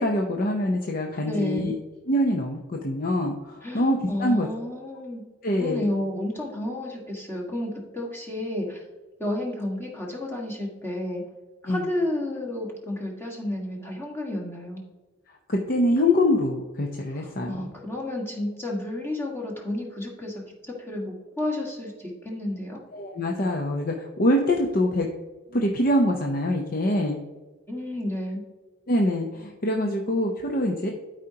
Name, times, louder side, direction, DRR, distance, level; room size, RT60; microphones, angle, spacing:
voice 1, 0.0-1.8 2.1-4.7 5.4-5.9 11.7-11.9 15.5-17.7 22.9-25.1 25.5-27.2 28.9-30.9, left 1 dB, 45° left, 1 dB, 0.7 m, -24 dB
voice 2, 1.2-1.7 3.6-5.2 5.6-8.8 9.2-11.2 11.6-14.8 17.4-22.8 27.7-28.4, left 1 dB, 10° left, -2 dB, 1.6 m, -31 dB
12.5 x 5.0 x 2.8 m, 1.2 s
head